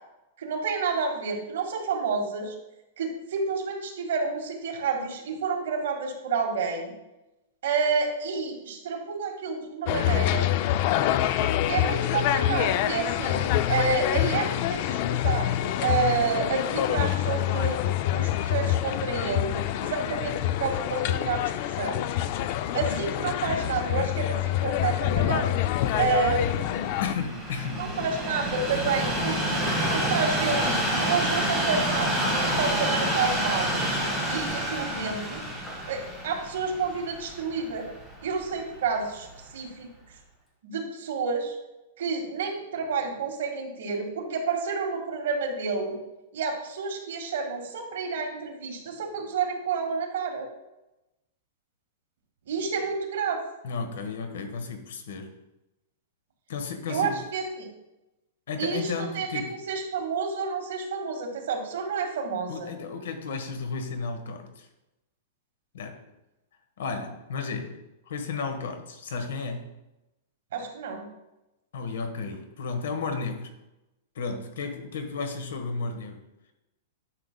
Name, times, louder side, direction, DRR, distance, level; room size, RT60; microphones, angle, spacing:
voice 1, 0.4-2.5 3.0-6.9 7.6-10.5 11.6-17.8 18.1-21.4 21.8-22.1 22.7-25.5 26.0-26.8 27.8-30.7 31.0-32.2 32.4-33.8 34.3-35.4 35.9-37.9 38.2-39.3 39.5-39.9 40.6-41.5 42.0-46.0 46.3-50.5 52.5-53.4 56.9-57.7 58.6-62.7 70.5-71.1, right 5 dB, 70° right, 1.7 m, -29 dB
sound 1, 9.9-27.1, left 12 dB, 40° left, 0.3 m, -26 dB
Train, 25.4-38.6 39.3-39.4, equal, 5° left, 1.5 m, -29 dB
voice 2, 27.0-28.2 53.6-55.3 56.5-57.2 58.5-59.6 62.5-64.7 65.7-66.0 66.8-69.7 71.7-73.5 74.1-76.3, left 4 dB, 80° left, 1.2 m, -33 dB
10.5 x 6.8 x 2.2 m
supercardioid pair, 165°, 0 cm